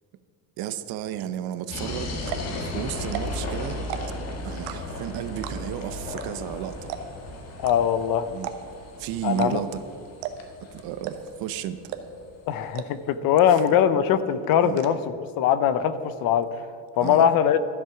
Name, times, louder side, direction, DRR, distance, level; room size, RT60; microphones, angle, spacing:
voice 1, 0.6-2.2 2.6-3.9 4.4-6.9 8.3-8.5 9.0-9.8 10.7-11.8 13.4-13.5 14.6-14.8 17.0-17.3, right 10 dB, 55° right, 12 dB, 0.7 m, -33 dB
sound 1, 1.7-12.4, left 1 dB, 35° left, 1.6 m, -35 dB
sound 2, 1.7-1.8 2.2-2.5 3.0-3.5 3.8-4.2 4.7-5.0 5.4-5.8 6.2-6.3 6.5-6.6 6.9-7.2 7.6-7.8 8.4-8.8 9.3-9.8 10.2-10.5 11.0-11.4 11.9-12.2 12.7-12.9 13.2-13.3 13.6-14.0 14.3-14.9, right 12 dB, 80° right, 1.1 m, -34 dB
voice 2, 7.6-8.3 9.2-9.6 12.5-15.0 15.4-16.7 17.0-17.6, left 9 dB, 50° left, 14 dB, 0.7 m, -21 dB
13.0 x 7.6 x 5.9 m, 2.6 s
cardioid pair, 145°, 44 cm